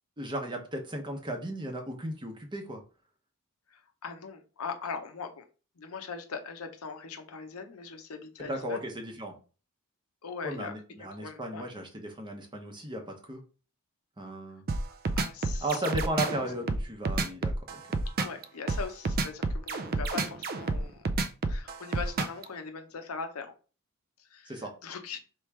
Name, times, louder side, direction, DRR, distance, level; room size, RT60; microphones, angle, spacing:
voice 1, 0.2-2.8 8.5-9.4 10.4-13.4 14.2-14.6 15.6-17.8 24.5-24.7, right 1 dB, 20° right, 3 dB, 0.8 m, -35 dB
voice 2, 3.7-5.4 5.8-8.8 10.2-10.7 11.2-11.6 15.2-15.8 18.2-21.0 21.5-23.5 24.2-25.2, left 5 dB, 70° left, 6 dB, 0.7 m, -40 dB
sound 1, 14.7-22.4, right 3 dB, 40° right, 0.4 m, -29 dB
3.5 x 3.1 x 4.5 m, 0.36 s
head